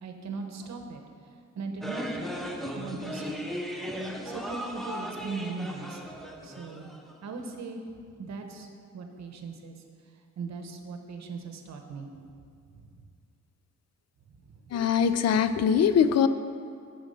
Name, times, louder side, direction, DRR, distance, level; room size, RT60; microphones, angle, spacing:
voice 1, 0.0-1.0 1.5-2.2 2.8-3.6 4.2-6.0 6.4-6.9 7.2-7.8 8.2-8.7 8.9-9.8 10.4-12.1 12.7-13.0 14.4-14.6, right 4 dB, 60° right, 4 dB, 0.9 m, -39 dB
sound 1, 1.8-7.2, equal, ahead, 0.5 m, -37 dB
voice 2, 14.7-16.3, left 7 dB, 55° left, 12 dB, 0.4 m, -22 dB
7.2 x 6.9 x 5.4 m, 2.3 s
wide cardioid pair, 180°, 31 cm